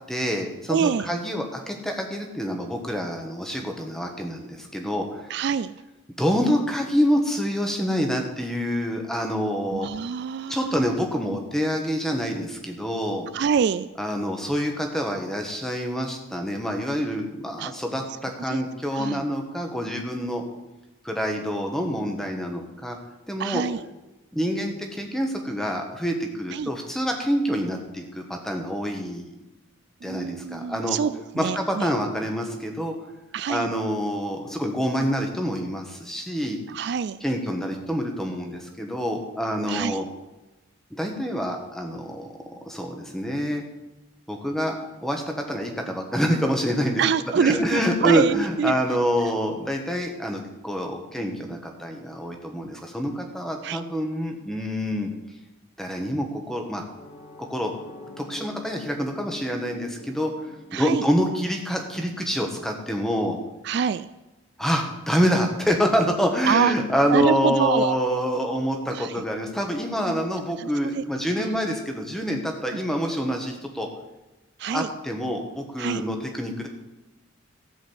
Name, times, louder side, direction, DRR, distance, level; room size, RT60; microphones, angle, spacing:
voice 1, 0.1-5.3 6.1-9.9 10.5-13.3 14.0-20.4 21.0-23.0 23.3-23.6 24.3-29.3 30.0-31.0 31.4-32.9 33.5-36.6 37.2-40.0 40.9-42.3 42.7-43.6 44.3-44.7 45.0-47.0 47.3-55.1 55.8-56.8 57.4-57.7 58.2-60.3 60.7-63.4 64.6-73.9 74.7-76.7, equal, ahead, 2 dB, 1.4 m, -26 dB
voice 2, 0.7-1.1 5.3-5.7 9.7-11.0 13.3-13.9 17.6-17.7 18.5-18.6 18.9-19.2 23.4-23.8 26.5-26.7 30.0-31.9 33.3-33.7 36.7-37.2 39.7-40.0 47.0-48.7 51.2-51.6 53.6-53.8 60.7-61.0 63.6-64.1 66.5-66.7 67.1-68.0 68.9-69.2 70.6-71.0 71.4-71.5 72.7-72.8 74.6-74.9 75.8-76.0, right 7 dB, 55° right, 14 dB, 0.3 m, -26 dB
sound 1, 57.0-61.8, left 2 dB, 35° left, 1.3 m, -45 dB
14.0 x 5.1 x 8.0 m, 1.0 s
head